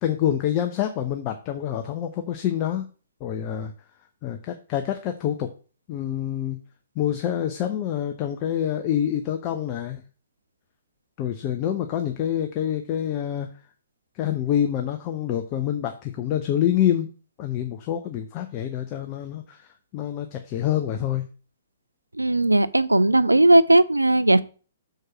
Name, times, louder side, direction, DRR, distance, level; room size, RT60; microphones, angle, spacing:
voice 1, 0.0-2.9 3.2-3.7 4.2-5.5 5.9-6.6 7.0-10.0 11.2-13.5 14.1-17.1 17.4-19.6 19.9-21.3, left 10 dB, 30° left, 0.8 m, -26 dB
voice 2, 22.2-24.4, right 1 dB, 85° right, 0.4 m, -17 dB
6.4 x 4.6 x 6.0 m
figure-of-eight pair, 120°, 0 cm